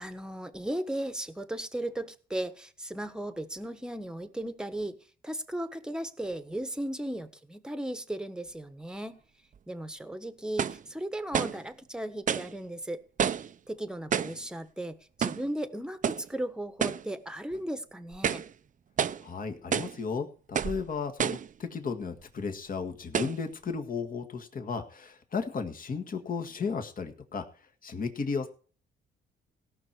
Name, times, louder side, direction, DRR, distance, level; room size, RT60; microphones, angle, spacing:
voice 1, 0.0-5.0 5.2-9.2 9.7-13.0 13.7-18.4, right 1 dB, 5° right, 11 dB, 1.2 m, -36 dB
sound 1, 9.5-9.6 10.6-10.8 11.3-11.6 12.3-12.5 13.2-13.5 14.1-14.4 15.2-15.5 16.0-16.3 16.8-17.1 17.5-17.6 18.1-18.5 19.0-19.3 19.7-20.0 20.5-20.8 21.2-21.5 22.2-22.3 23.1-23.4, right 8 dB, 40° right, 0.6 m, -29 dB
voice 2, 19.2-27.4 27.8-28.5, left 5 dB, 45° left, 5 dB, 1.8 m, -34 dB
17.5 x 6.1 x 4.6 m, 0.40 s
cardioid pair, 90°, 20 cm